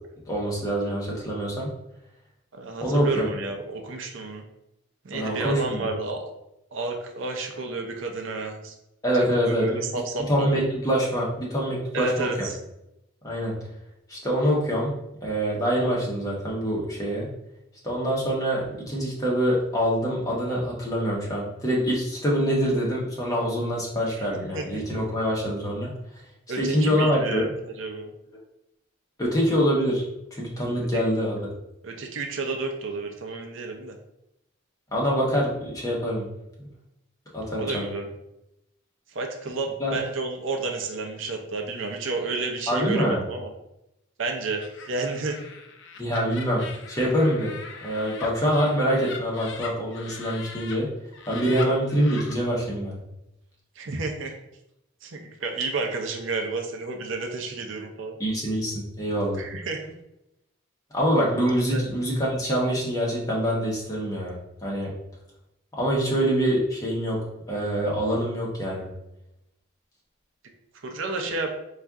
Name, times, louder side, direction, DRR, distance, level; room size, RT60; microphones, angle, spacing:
voice 1, 0.2-1.7 2.8-3.2 5.1-5.9 9.0-9.8 10.3-12.5 13.2-13.6 14.1-14.9 15.2-17.3 17.8-25.9 26.6-27.5 29.2-30.0 30.3-31.4 34.9-36.2 37.3-37.9 39.8-40.0 42.7-43.2 46.0-46.6 46.9-47.5 47.8-50.9 51.3-53.0 58.2-59.4 60.9-64.9 65.8-67.2 67.5-68.9, equal, 15° left, -4 dB, 0.9 m, -25 dB
voice 2, 2.5-4.4 5.0-6.2 6.7-8.7 9.3-10.6 11.9-12.6 24.1-24.3 24.5-24.8 26.5-27.5 27.8-28.1 30.9-31.0 31.8-34.0 37.5-38.1 39.1-43.5 44.2-45.4 53.8-54.3 55.0-58.2 59.4-59.9 61.7-61.8 70.8-71.5, right 3 dB, 65° right, 3 dB, 0.5 m, -31 dB
Laughter, 44.6-50.8 51.1-52.3, left 5 dB, 60° left, 0.5 m, -41 dB
4.2 x 2.4 x 3.5 m, 0.86 s
head